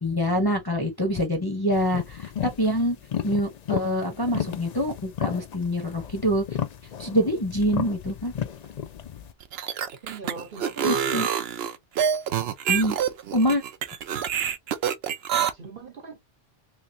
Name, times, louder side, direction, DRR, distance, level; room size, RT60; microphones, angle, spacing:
voice 1, 0.0-3.0 3.2-6.4 7.0-8.3 10.8-11.3 12.7-13.0 13.3-13.6, equal, 25° left, 0.7 m, -25 dB
sound 1, 1.7-9.3, left 9 dB, 55° left, 0.5 m, -33 dB
sound 2, 9.4-15.5, right 8 dB, 65° right, 0.8 m, -26 dB
voice 2, 10.0-11.2 15.5-16.2, right 5 dB, 50° right, 1.2 m, -39 dB
3.2 x 3.2 x 2.7 m
omnidirectional pair, 1.2 m